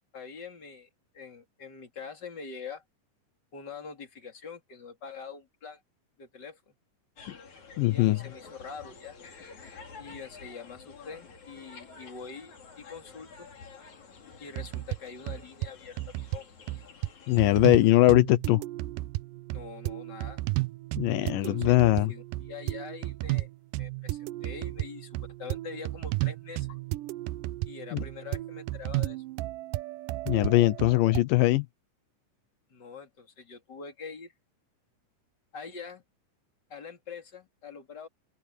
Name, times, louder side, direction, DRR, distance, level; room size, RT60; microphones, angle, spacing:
voice 1, 0.1-2.8 3.5-5.8 6.2-6.7 7.9-9.2 10.0-13.5 14.4-16.5 19.5-20.4 21.2-23.5 23.8-26.7 27.7-29.2 32.7-34.3 35.5-36.0 36.7-38.1, left 5 dB, 30° left, 3.5 m, -44 dB
sound 1, 7.2-17.9, left 5 dB, 60° left, 4.7 m, -50 dB
voice 2, 7.8-8.2 17.3-18.6 21.0-22.1 27.9-28.0 30.3-31.7, left 17 dB, 85° left, 2.5 m, -21 dB
sound 2, 14.6-15.0 15.3-15.7 16.0-16.4 16.7-17.1 17.4-17.8 18.1-31.2, right 18 dB, 85° right, 2.2 m, -34 dB
open air
omnidirectional pair, 3.8 m